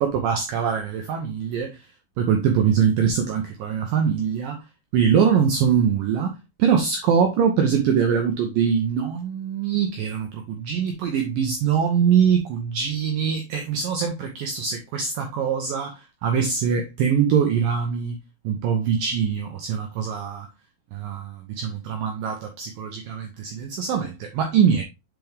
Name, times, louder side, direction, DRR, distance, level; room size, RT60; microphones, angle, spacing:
voice 1, 0.0-1.8 2.2-4.6 4.9-18.2 18.4-20.5 20.9-24.8, right 7 dB, 90° right, 1.9 m, -23 dB
7.5 x 4.6 x 3.4 m
omnidirectional pair, 5.2 m